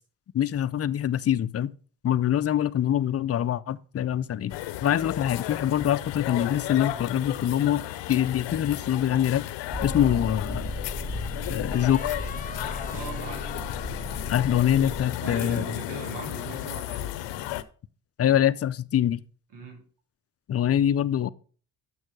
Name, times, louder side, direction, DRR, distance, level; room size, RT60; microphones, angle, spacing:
voice 1, 0.3-1.7 2.0-4.5 4.8-9.4 9.8-10.8 11.5-12.2 14.3-15.7 18.2-19.2 20.5-21.3, left 10 dB, 35° left, 0.5 m, -24 dB
sound 1, 4.5-17.6, left 14 dB, 85° left, 0.7 m, -34 dB
Motor vehicle (road), 9.7-15.0, equal, ahead, 1.3 m, -36 dB
sound 2, 11.7-15.1, left 4 dB, 20° left, 1.1 m, -42 dB
voice 2, 12.8-13.7 15.2-17.1 19.5-19.8, right 3 dB, 75° right, 3.6 m, -39 dB
7.1 x 6.4 x 5.1 m
cardioid pair, 95°, 42 cm